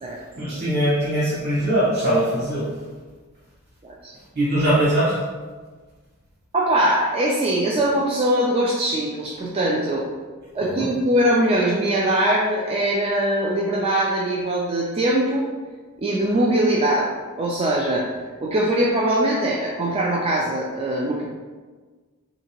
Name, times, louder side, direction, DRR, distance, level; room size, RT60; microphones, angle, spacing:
voice 1, 0.4-2.7 4.3-5.2 10.6-10.9, right 1 dB, 45° right, -10 dB, 0.9 m, -21 dB
voice 2, 3.8-4.1 6.5-10.1 10.5-15.5 16.0-17.1 17.4-18.1 18.4-21.3, right 1 dB, 25° right, -3 dB, 0.3 m, -21 dB
3.4 x 2.8 x 2.8 m, 1.4 s
head